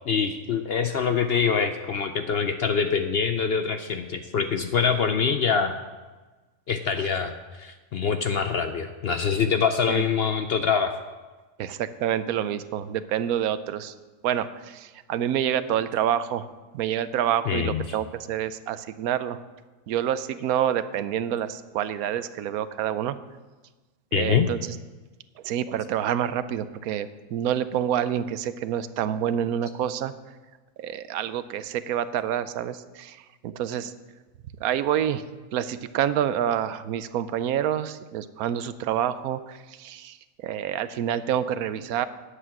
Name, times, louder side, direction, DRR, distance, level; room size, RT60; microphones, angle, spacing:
voice 1, 0.1-5.8 6.7-10.9 17.5-18.0 24.1-24.5, left 6 dB, 60° left, 7 dB, 0.6 m, -25 dB
voice 2, 11.6-13.9 14.2-16.5 16.7-19.4 19.9-23.2 24.1-24.8 25.4-30.1 30.8-33.2 33.4-33.9 34.6-35.2 35.5-42.1, right 10 dB, 80° right, 13 dB, 1.1 m, -27 dB
10.0 x 8.0 x 6.0 m, 1.2 s
omnidirectional pair, 1.5 m